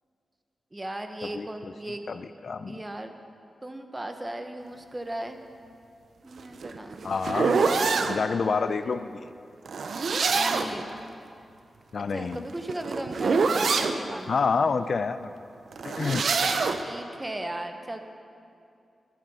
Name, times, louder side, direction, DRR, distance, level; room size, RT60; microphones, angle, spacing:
voice 1, 0.7-2.1 2.7-3.1 3.6-5.4 6.2-7.7 10.3-10.9 12.1-14.4 16.8-18.0, right 1 dB, 20° right, 6 dB, 0.9 m, -37 dB
voice 2, 1.2-1.7 2.1-2.8 7.0-7.7 8.1-9.3 11.9-12.4 14.3-15.3 15.8-16.3, left 5 dB, 60° left, 11 dB, 0.4 m, -28 dB
sound 1, 6.4-8.2 9.7-10.8 12.2-14.0 15.7-16.8, right 4 dB, 75° right, 0.6 m, -25 dB
11.5 x 10.5 x 5.6 m, 2.5 s
wide cardioid pair, 95°, 0 cm